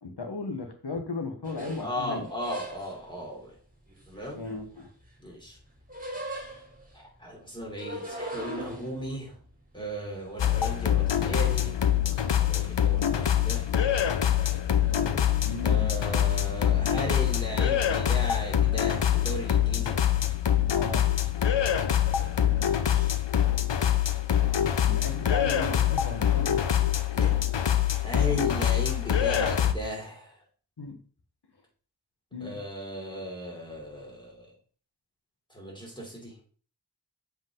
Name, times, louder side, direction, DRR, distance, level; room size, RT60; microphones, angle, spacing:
voice 1, 0.0-2.3 4.3-4.9 15.4-15.9 20.7-21.1 24.8-26.6 30.8-31.0 32.3-32.6, left 3 dB, 65° left, 4 dB, 1.6 m, -36 dB
sound 1, 1.4-3.1 3.9-5.2 5.5-7.0 7.6-11.4 11.7-12.4 12.7-13.2 13.6-13.8 14.9-15.3, equal, 20° right, 2.8 m, -41 dB
voice 2, 1.8-3.5 4.1-4.4 5.2-5.6 6.9-9.3 9.7-11.7 12.0-13.7 15.6-20.0 21.7-22.0 22.7-23.1 27.1-27.3 28.0-30.4 32.4-34.5 35.5-36.3, equal, 10° left, -2 dB, 3.4 m, -36 dB
sound 2, 10.4-29.7, left 10 dB, 85° left, 0.7 m, -25 dB
7.2 x 5.3 x 3.8 m, 0.42 s
wide cardioid pair, 45°, 42 cm